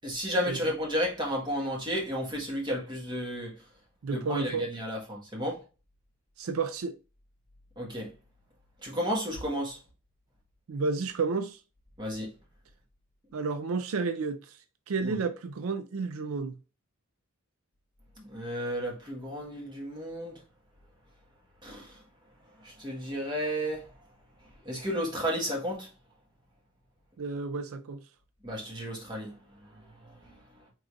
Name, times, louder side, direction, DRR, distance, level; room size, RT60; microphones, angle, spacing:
voice 1, 0.0-3.5 4.1-5.6 7.8-8.1 8.8-9.8 12.0-12.3 15.0-15.2 18.2-20.4 21.6-22.0 22.6-23.9 24.6-25.9 28.4-30.1, equal, 20° right, 1.4 m, -33 dB
voice 2, 4.0-4.6 6.4-7.0 10.7-11.6 13.3-14.6 14.9-16.6 27.2-28.0, right 4 dB, 80° right, 0.4 m, -31 dB
4.7 x 3.8 x 2.4 m
head